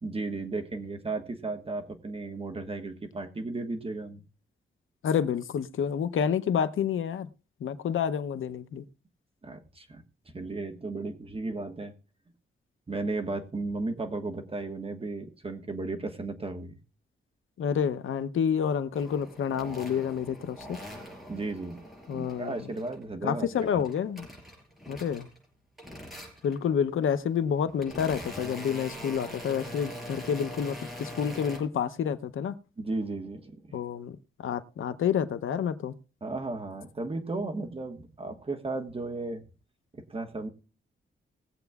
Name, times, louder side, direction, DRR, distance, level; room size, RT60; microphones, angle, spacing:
voice 1, 0.0-4.2 9.4-10.0 10.3-11.9 12.9-16.8 21.3-21.9 22.1-23.5 23.7-23.9 32.8-33.8 36.2-39.4 39.9-40.5, right 3 dB, 30° right, 1.3 m, -35 dB
voice 2, 5.0-7.3 7.6-8.9 17.6-20.8 22.1-22.6 23.2-24.3 24.9-25.3 26.4-32.6 33.7-35.9, left 8 dB, 80° left, 0.7 m, -29 dB
sound 1, 18.9-23.0 23.4-25.5 25.8-26.6 27.3-31.6, equal, ahead, 5.3 m, -43 dB
20.5 x 7.9 x 2.3 m
wide cardioid pair, 120°, 20 cm